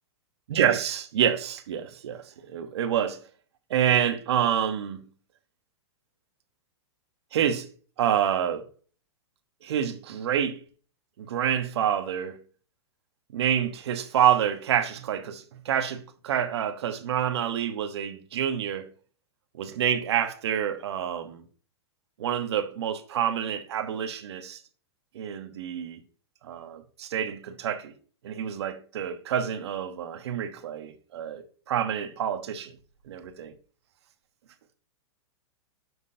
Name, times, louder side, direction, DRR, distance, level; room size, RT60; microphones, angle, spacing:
voice 1, 0.5-3.2 3.7-5.0 7.3-7.7 8.0-8.6 9.6-10.6 11.2-12.4 13.3-18.9 19.6-21.4 22.2-24.6 25.1-26.0 26.4-27.9 28.2-32.7 33.1-33.5, right 9 dB, 70° right, 1.2 m, -27 dB
7.6 x 6.3 x 2.7 m
hypercardioid pair, 130°, 14 cm